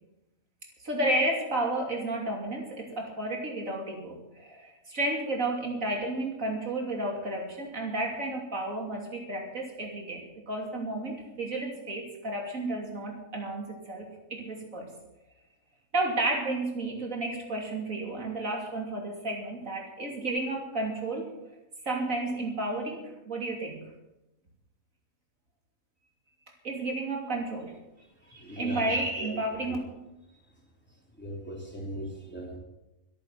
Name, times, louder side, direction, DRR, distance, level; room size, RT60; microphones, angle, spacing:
voice 1, 0.8-14.9 15.9-21.3 21.8-23.8 26.6-27.8 28.3-29.8, right 2 dB, 70° right, 1 dB, 3.3 m, -32 dB
voice 2, 28.2-29.9 31.1-32.6, equal, 5° left, -2 dB, 3.7 m, -39 dB
24.0 x 8.9 x 6.0 m, 0.95 s
omnidirectional pair, 1.4 m